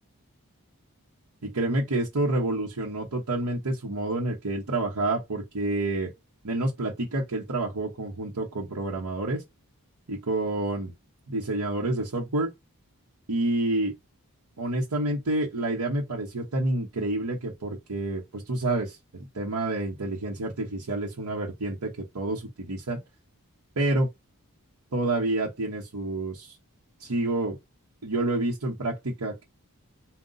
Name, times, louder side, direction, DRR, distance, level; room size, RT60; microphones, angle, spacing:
voice 1, 1.4-6.1 6.4-9.4 10.1-10.9 11.3-12.5 13.3-13.9 14.6-19.0 19.3-23.0 23.8-24.1 24.9-26.5 27.0-27.6 28.0-29.4, right 2 dB, 90° right, 0.9 m, -28 dB
3.9 x 2.2 x 3.8 m
head